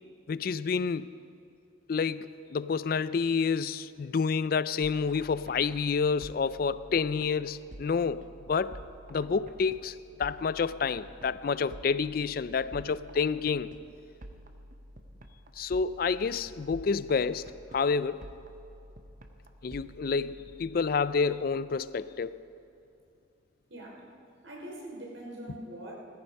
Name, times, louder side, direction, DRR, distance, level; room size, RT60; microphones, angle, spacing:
voice 1, 0.3-1.1 1.9-8.8 9.1-13.7 15.6-17.4 17.7-18.2 19.6-22.4, left 5 dB, 50° left, 0.4 m, -29 dB
sound 1, 4.8-22.4, right 1 dB, 40° right, 0.9 m, -50 dB
voice 2, 23.7-24.1 24.4-25.9, right 1 dB, 85° right, 3.5 m, -43 dB
17.0 x 14.5 x 5.4 m
head